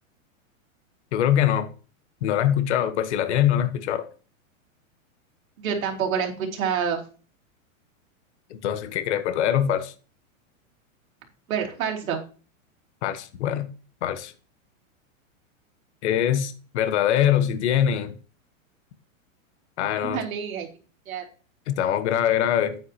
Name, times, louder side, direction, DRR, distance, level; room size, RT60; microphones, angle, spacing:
voice 1, 1.1-1.7 2.2-4.1 8.6-9.9 13.0-13.7 14.0-14.3 16.0-18.1 19.8-20.2 21.7-22.8, left 10 dB, 55° left, 1.2 m, -23 dB
voice 2, 5.6-7.0 11.5-12.2 20.1-20.7 21.1-21.2, right 7 dB, 80° right, 3.2 m, -27 dB
9.7 x 9.4 x 2.9 m
supercardioid pair, 165°, 41 cm